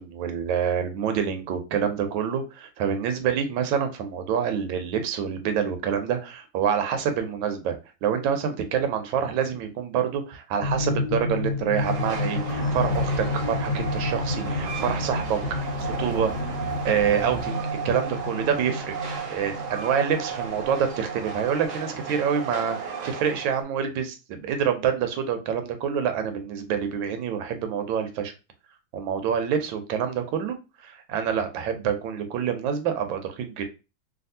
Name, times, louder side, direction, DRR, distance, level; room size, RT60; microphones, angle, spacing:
voice 1, 0.0-16.3 16.8-19.0 19.3-28.3 28.9-30.5 30.8-33.6, right 7 dB, 90° right, 7 dB, 1.4 m, -27 dB
sound 1, 10.6-21.8, left 2 dB, 80° left, 0.5 m, -31 dB
Train, 11.7-23.6, right 6 dB, 60° right, 0.8 m, -35 dB
sound 2, 12.5-17.5, left 2 dB, 45° left, 1.2 m, -36 dB
3.4 x 2.3 x 2.6 m, 0.29 s
omnidirectional pair, 2.1 m